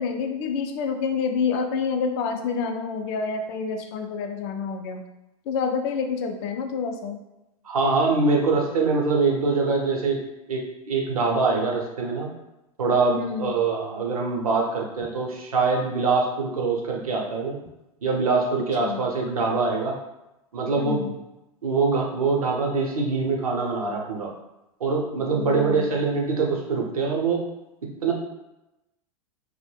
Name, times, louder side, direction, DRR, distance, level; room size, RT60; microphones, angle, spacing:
voice 1, 0.0-5.0 5.5-7.2 13.2-13.6 18.8-19.0 20.8-21.1 25.3-25.9, left 5 dB, 45° left, 5 dB, 0.4 m, -28 dB
voice 2, 7.6-10.2 10.5-12.3 12.8-17.6 18.0-20.0 20.5-21.0 21.6-24.3 24.8-27.4 28.0-28.1, right 4 dB, 80° right, 0 dB, 0.6 m, -24 dB
2.2 x 2.0 x 3.1 m, 0.94 s
hypercardioid pair, 95°, 18 cm